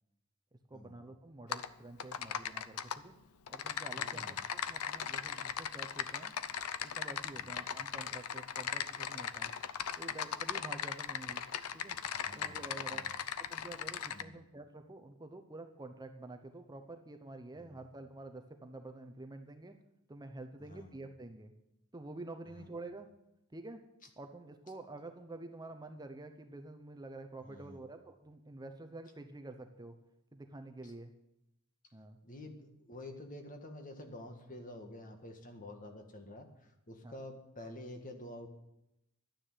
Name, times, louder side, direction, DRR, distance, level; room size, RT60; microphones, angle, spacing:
voice 1, 0.7-3.2 3.5-6.3 7.0-9.5 10.0-11.5 11.7-12.0 12.4-13.1 13.5-19.8 20.1-21.5 21.9-23.1 23.5-23.8 24.2-30.0 30.3-31.1 31.9-32.2 37.0-37.2, right 2 dB, 20° right, 6 dB, 0.8 m, -48 dB
Typing, 1.5-1.7 2.0-3.0 3.5-14.2, left 8 dB, 80° left, 0.6 m, -38 dB
voice 2, 3.9-4.4 7.3-7.5 12.2-12.6 12.9-13.1 14.1-14.4 17.6-17.8 20.6-21.0 22.5-22.7 27.4-27.8 30.8-30.9 32.2-38.5, left 1 dB, 40° left, 5 dB, 1.8 m, -49 dB
11.5 x 9.8 x 7.5 m, 0.86 s
head